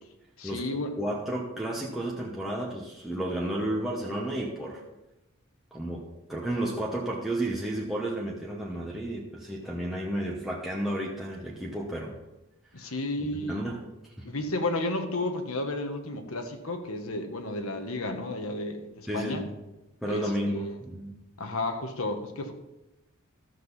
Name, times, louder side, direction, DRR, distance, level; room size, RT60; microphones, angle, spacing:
voice 1, 0.4-0.9 12.7-13.6 14.2-19.4 20.1-20.7 21.4-22.5, left 2 dB, 80° left, 6 dB, 1.4 m, -32 dB
voice 2, 1.0-4.8 5.7-12.1 13.3-13.8 14.2-14.3 19.1-19.5 20.0-21.2, right 1 dB, ahead, -5 dB, 1.1 m, -32 dB
12.5 x 7.7 x 4.1 m, 0.98 s
head